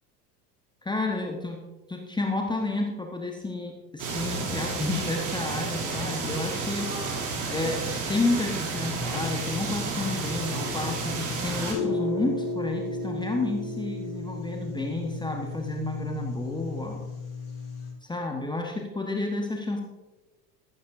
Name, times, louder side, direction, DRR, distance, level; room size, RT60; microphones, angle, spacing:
voice 1, 0.8-1.6 1.9-6.9 7.5-17.0 18.0-19.8, left 2 dB, 10° left, 2 dB, 1.3 m, -31 dB
sound 1, 4.0-11.7, right 4 dB, 40° right, 3.2 m, -31 dB
sound 2, 8.7-17.9, left 3 dB, 50° left, 4.4 m, -35 dB
15.0 x 12.0 x 2.7 m, 1.1 s
figure-of-eight pair, 70°, 48 cm